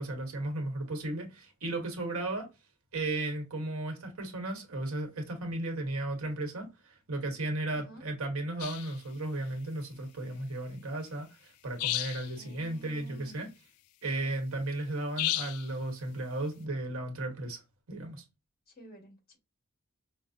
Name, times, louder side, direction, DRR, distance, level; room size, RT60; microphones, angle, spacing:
voice 1, 0.0-2.5 2.9-13.5 14.0-17.6 17.9-18.2, right 2 dB, 75° right, 1.2 m, -35 dB
voice 2, 7.7-8.0 12.3-13.4 18.7-19.4, right 2 dB, 45° left, 1.7 m, -51 dB
sound 1, 8.6-9.0 11.8-12.4 15.2-15.7, left 13 dB, 90° left, 0.3 m, -32 dB
5.3 x 2.0 x 2.6 m
head